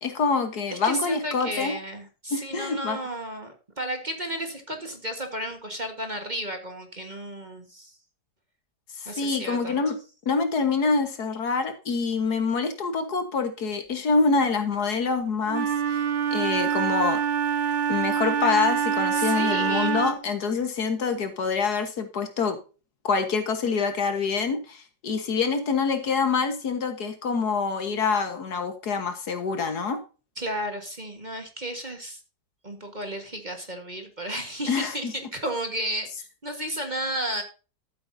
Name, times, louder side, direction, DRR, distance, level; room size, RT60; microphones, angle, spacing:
voice 1, 0.0-1.8 2.3-3.0 9.0-10.0 10.3-16.0 16.3-17.2 17.9-22.6 23.0-30.0 34.7-35.1, left 4 dB, 65° left, 7 dB, 1.9 m, -26 dB
voice 2, 0.7-8.0 9.0-9.8 19.1-20.1 30.4-32.2 32.6-37.4, right 1 dB, 25° right, 5 dB, 1.5 m, -33 dB
Wind instrument woodwind instrument, 15.5-20.3, right 7 dB, 60° right, 0.5 m, -25 dB
13.0 x 7.9 x 2.7 m, 0.33 s
omnidirectional pair, 1.8 m